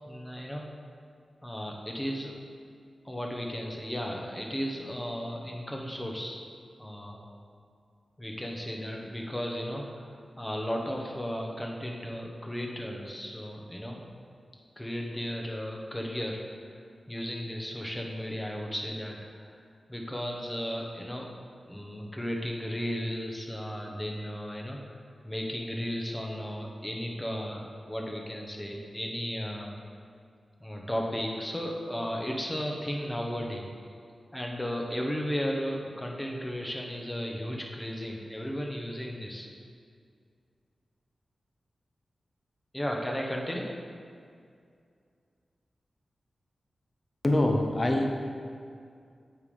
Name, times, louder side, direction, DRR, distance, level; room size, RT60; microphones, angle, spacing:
voice 1, 0.1-0.7 1.4-2.3 3.0-6.4 6.8-7.3 8.2-14.1 14.8-16.4 17.1-19.5 19.9-21.3 21.7-25.0 25.2-29.7 30.6-33.6 34.3-39.5 42.7-43.7, equal, 15° left, 0 dB, 1.1 m, -35 dB
voice 2, 47.2-48.1, left 1 dB, 35° left, 3 dB, 0.8 m, -24 dB
8.0 x 3.4 x 5.4 m, 2.3 s
cardioid pair, 55°, 0 cm